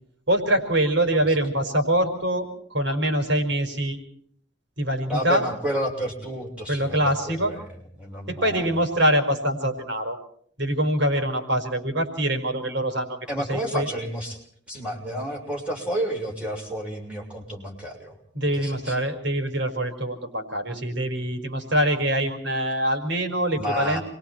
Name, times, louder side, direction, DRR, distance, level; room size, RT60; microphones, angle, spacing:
voice 1, 0.3-4.0 4.8-5.5 6.7-7.5 8.3-10.2 10.6-13.2 13.5-13.9 18.4-24.0, right 1 dB, 85° right, 5 dB, 5.1 m, -24 dB
voice 2, 5.1-7.6 8.0-8.7 13.3-14.4 14.7-18.1 18.5-19.0 23.5-24.0, equal, 5° right, -1 dB, 6.6 m, -30 dB
29.0 x 23.5 x 4.5 m, 0.62 s
head